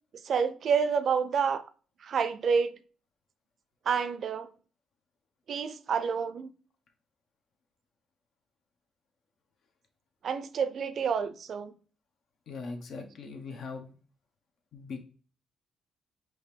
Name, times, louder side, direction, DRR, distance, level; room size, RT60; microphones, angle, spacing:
voice 1, 0.2-1.6 2.0-2.8 3.9-4.5 5.5-6.5 10.2-11.7, right 6 dB, 60° right, 0.4 m, -28 dB
voice 2, 12.5-13.9 14.7-15.0, left 4 dB, 65° left, 0.9 m, -40 dB
5.0 x 3.0 x 3.3 m
cardioid pair, 90°, 0 cm